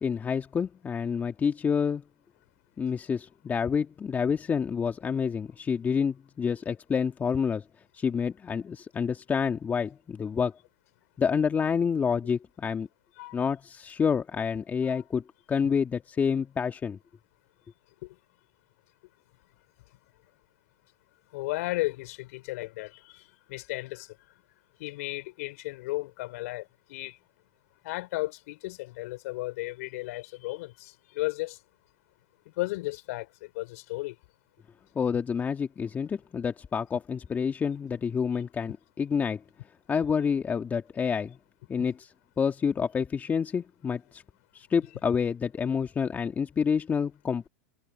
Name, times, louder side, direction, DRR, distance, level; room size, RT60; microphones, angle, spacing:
voice 1, 0.0-2.0 2.8-7.6 7.9-10.5 11.2-12.9 13.3-15.2 15.5-17.0 35.0-39.4 39.9-41.4 41.7-44.2 44.5-47.5, left 6 dB, 20° left, 1.8 m, -28 dB
voice 2, 21.3-23.0 23.5-24.1 24.8-26.6 26.9-27.2 27.8-31.6 32.6-33.3 33.6-34.1, left 20 dB, 65° left, 5.5 m, -34 dB
hypercardioid pair, 120°, 9 cm